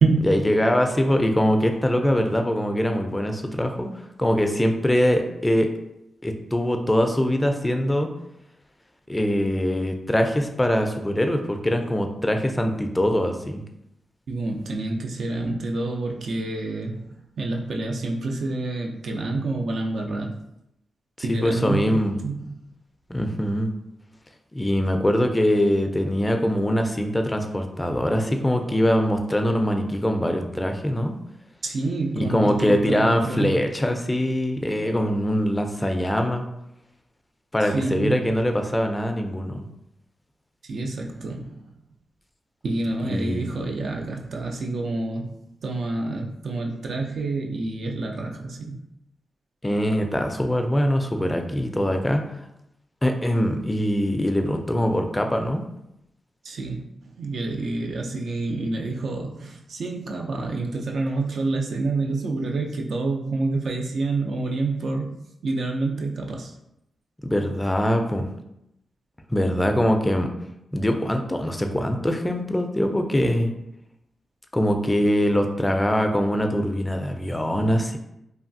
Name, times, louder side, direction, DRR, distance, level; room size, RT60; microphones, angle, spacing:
voice 1, 0.3-5.7 6.2-8.1 9.1-13.6 21.3-22.2 23.1-23.7 24.5-31.1 32.2-36.4 37.5-39.6 43.1-43.5 49.6-52.2 53.0-55.6 67.2-68.3 69.3-70.3 70.7-73.5 74.5-78.0, equal, 15° left, 5 dB, 0.4 m, -23 dB
voice 2, 14.3-20.4 21.2-22.5 31.6-33.7 37.6-38.3 40.6-41.7 42.6-45.3 45.6-48.8 56.4-56.8 57.1-65.1 65.4-66.5, right 3 dB, 75° right, 1 dB, 0.4 m, -28 dB
3.2 x 2.3 x 2.5 m, 0.83 s
cardioid pair, 60°, 0 cm